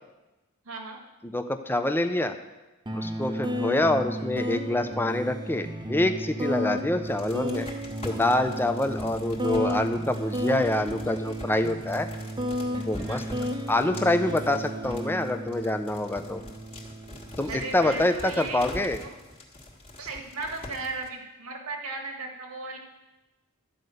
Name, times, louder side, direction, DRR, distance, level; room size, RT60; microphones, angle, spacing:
voice 1, 0.7-1.0 12.9-13.2 17.4-19.1 20.0-22.8, right 3 dB, 85° right, 2 dB, 1.8 m, -36 dB
voice 2, 1.2-2.3 2.9-7.7 8.0-12.1 12.7-13.2 13.7-16.4 17.4-19.0, left 1 dB, 10° left, 7 dB, 0.6 m, -26 dB
sound 1, 2.8-17.9, equal, 20° right, 0.8 m, -33 dB
sound 2, 7.0-21.1, left 1 dB, 30° left, 1.7 m, -44 dB
12.0 x 5.4 x 7.8 m, 1.1 s
head